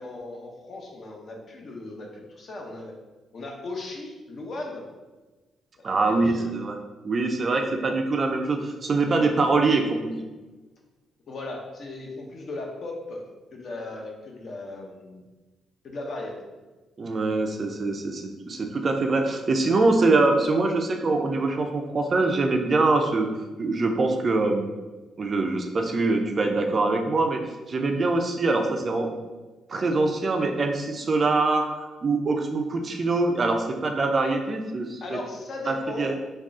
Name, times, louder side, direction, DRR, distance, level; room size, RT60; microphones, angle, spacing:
voice 1, 0.0-3.0 3.3-4.9 5.8-6.5 11.3-13.2 13.5-15.2 15.8-16.3 35.0-36.1, left 2 dB, 45° left, 0 dB, 0.6 m, -37 dB
voice 2, 5.8-6.8 7.0-10.1 17.0-23.3 23.6-24.7 25.2-27.4 27.7-29.1 29.7-31.7 32.0-35.2 35.7-36.2, right 3 dB, 35° right, 4 dB, 0.3 m, -24 dB
3.6 x 2.3 x 3.6 m, 1.2 s
cardioid pair, 135°, 0 cm